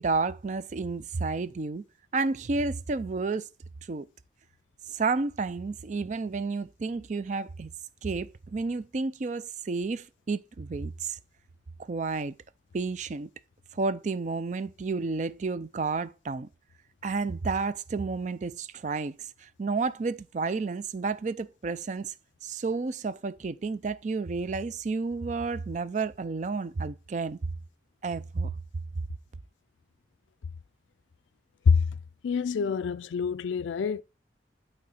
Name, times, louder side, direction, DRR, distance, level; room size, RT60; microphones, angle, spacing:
voice 1, 0.0-1.8 2.1-3.5 3.9-4.1 4.9-7.7 8.0-11.2 11.8-12.4 12.7-13.3 13.7-16.5 17.0-22.1 22.4-27.4 28.0-28.5, right 4 dB, 40° right, 0.4 m, -31 dB
voice 2, 32.2-34.0, left 5 dB, 80° left, 0.4 m, -25 dB
8.5 x 4.4 x 4.1 m
head